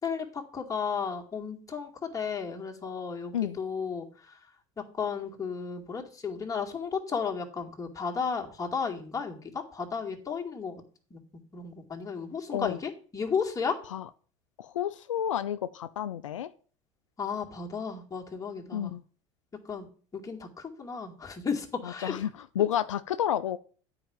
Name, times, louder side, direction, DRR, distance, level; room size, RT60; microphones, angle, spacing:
voice 1, 0.0-4.4 4.8-10.8 11.1-11.2 11.5-13.8 17.2-18.9 19.6-19.9 20.1-22.3, left 6 dB, 20° left, 1 dB, 2.3 m, -34 dB
voice 2, 14.6-16.5 18.7-19.0 21.8-23.6, left 10 dB, 85° left, 13 dB, 0.4 m, -30 dB
9.3 x 5.0 x 6.9 m, 0.41 s
hypercardioid pair, 75°, 16 cm